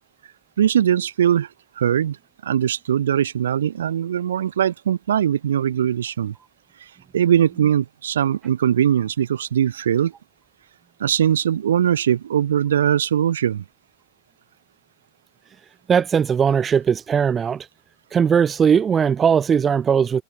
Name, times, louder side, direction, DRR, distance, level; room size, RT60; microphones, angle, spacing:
voice 1, 0.6-1.5 1.8-2.2 2.4-6.3 7.1-10.1 11.0-13.6, right 9 dB, 65° right, 1.8 m, -20 dB
voice 2, 15.9-17.7 18.1-20.2, right 7 dB, 25° right, 0.8 m, -19 dB
open air
figure-of-eight pair, 85°, 0 cm